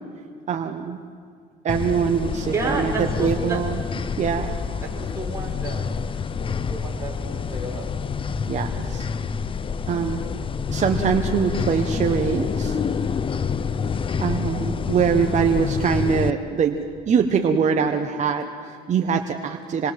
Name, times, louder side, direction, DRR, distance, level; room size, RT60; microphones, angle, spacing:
voice 1, 0.5-1.0 1.6-2.9 3.2-3.8 4.2-4.6 8.5-9.1 9.9-10.2 10.7-12.8 14.2-16.8 17.1-19.9, right 6 dB, 45° right, 4 dB, 1.3 m, -23 dB
sound 1, 1.7-16.3, left 6 dB, 30° left, 0.7 m, -27 dB
voice 2, 2.5-3.6 4.8-5.9 6.5-7.9, right 3 dB, 15° right, -1 dB, 5.8 m, -31 dB
26.5 x 21.0 x 7.7 m, 2.3 s
cardioid pair, 110°, 17 cm